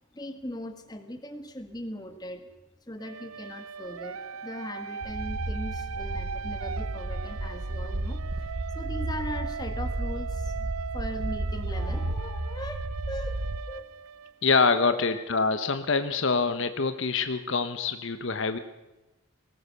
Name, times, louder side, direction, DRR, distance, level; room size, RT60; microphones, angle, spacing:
voice 1, 0.1-2.5 2.9-13.4 13.7-13.9 14.7-15.2, left 1 dB, 20° left, 7 dB, 1.6 m, -39 dB
sound 1, 3.0-14.8, right 6 dB, 85° right, 0.6 m, -39 dB
sound 2, 5.0-13.6, right 2 dB, 60° right, 0.9 m, -33 dB
voice 2, 14.4-18.6, left 4 dB, 60° left, 10 dB, 1.0 m, -25 dB
20.5 x 18.5 x 6.8 m, 1.0 s
head